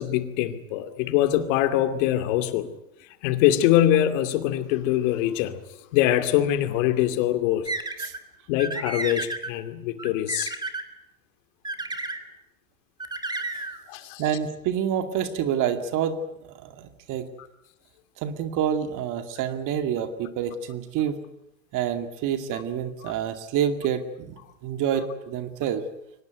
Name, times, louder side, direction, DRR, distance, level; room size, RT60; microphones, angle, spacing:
voice 1, 0.0-2.7 3.2-5.6 5.9-7.7 8.5-10.5 13.9-14.2 22.5-22.6 23.0-23.1, left 12 dB, 65° left, 10 dB, 2.6 m, -23 dB
sound 1, 7.7-8.2 8.6-9.5 10.0-10.8 11.6-12.2 13.0-13.8, right 2 dB, 10° right, 2.6 m, -32 dB
voice 2, 14.2-16.2 16.5-17.3 18.2-21.2 21.7-24.4 24.6-25.8, right 9 dB, 45° right, 8 dB, 2.4 m, -27 dB
23.5 x 19.0 x 9.2 m, 0.83 s
hypercardioid pair, 110°, 41 cm